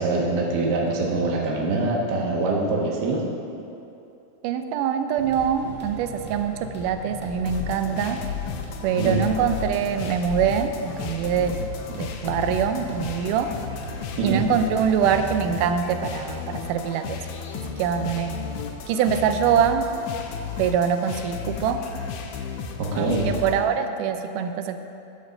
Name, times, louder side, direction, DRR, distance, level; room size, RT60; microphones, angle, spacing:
voice 1, 0.0-3.3 9.0-9.3 14.2-14.5 22.8-23.3, right 2 dB, 60° right, -2 dB, 1.1 m, -24 dB
voice 2, 4.4-8.2 8.8-11.6 11.9-13.5 14.2-17.2 17.8-18.4 18.9-19.9 20.6-21.8 23.0-24.8, right 8 dB, 90° right, 8 dB, 2.1 m, -24 dB
sound 1, 5.2-15.4, equal, 5° right, 0.9 m, -39 dB
sound 2, 7.5-23.6, left 7 dB, 75° left, 2.0 m, -34 dB
11.0 x 5.2 x 6.4 m, 2.7 s
omnidirectional pair, 3.6 m